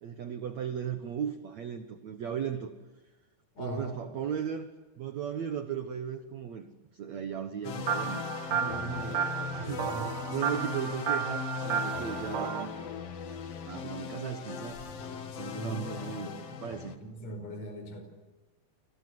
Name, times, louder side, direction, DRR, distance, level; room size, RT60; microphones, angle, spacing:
voice 1, 0.0-2.7 3.6-4.7 5.0-8.2 8.5-9.2 9.6-9.9 10.3-12.7 13.7-14.8 15.4-16.9, right 8 dB, 85° right, 7 dB, 1.5 m, -36 dB
voice 2, 3.5-4.0 9.8-10.1 15.5-16.4 17.0-18.0, right 2 dB, 35° left, 6 dB, 6.1 m, -40 dB
sound 1, 7.6-17.0, left 6 dB, 60° left, 1.7 m, -39 dB
sound 2, 7.9-12.7, right 7 dB, 65° right, 1.8 m, -33 dB
30.0 x 23.0 x 8.0 m, 1.2 s
omnidirectional pair, 5.2 m